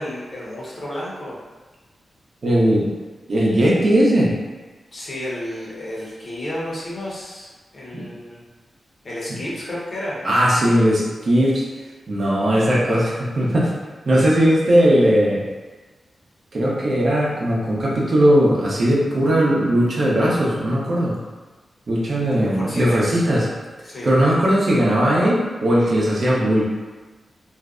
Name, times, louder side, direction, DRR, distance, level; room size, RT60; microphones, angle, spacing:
voice 1, 0.0-1.4 4.9-8.4 9.0-10.2 22.2-23.2 23.8-24.1, left 1 dB, 50° left, -6 dB, 0.8 m, -31 dB
voice 2, 2.4-2.9 3.3-4.3 7.9-8.1 10.2-11.6 12.1-13.7 14.1-15.4 16.5-21.2 21.9-23.4 24.0-26.6, equal, 60° right, -5 dB, 0.6 m, -18 dB
2.5 x 2.1 x 2.4 m, 1.3 s
cardioid pair, 60°, 0 cm